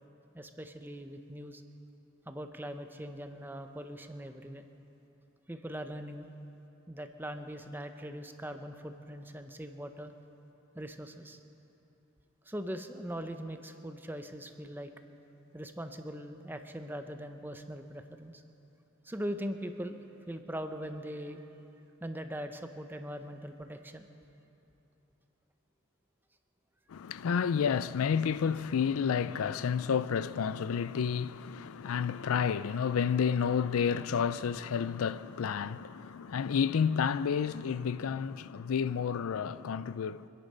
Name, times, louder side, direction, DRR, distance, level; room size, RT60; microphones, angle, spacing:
voice 1, 0.3-1.6 2.3-4.7 5.5-6.3 6.9-10.1 10.7-11.4 12.5-14.9 15.5-18.4 19.0-20.0 20.3-21.5 22.0-24.1, equal, 10° right, 0.7 m, -41 dB
voice 2, 26.9-40.3, left 7 dB, 85° left, 0.4 m, -30 dB
25.0 x 10.5 x 5.5 m
head